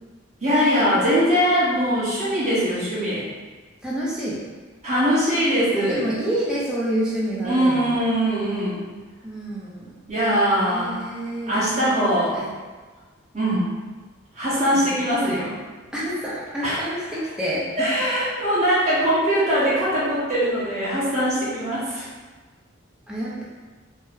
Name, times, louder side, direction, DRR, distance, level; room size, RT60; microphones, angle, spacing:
voice 1, 0.4-3.2 4.8-6.0 7.4-8.9 10.1-11.0 11.5-12.3 13.3-13.7 14.3-15.5 16.6-16.8 17.8-22.1, equal, 35° right, -11 dB, 1.2 m, -21 dB
voice 2, 3.8-4.4 5.7-8.0 9.2-9.9 10.6-12.0 12.3-12.5 14.7-15.5 15.9-17.9 23.1-23.4, right 1 dB, 5° right, -7 dB, 0.6 m, -28 dB
3.7 x 2.1 x 2.7 m, 1.4 s
head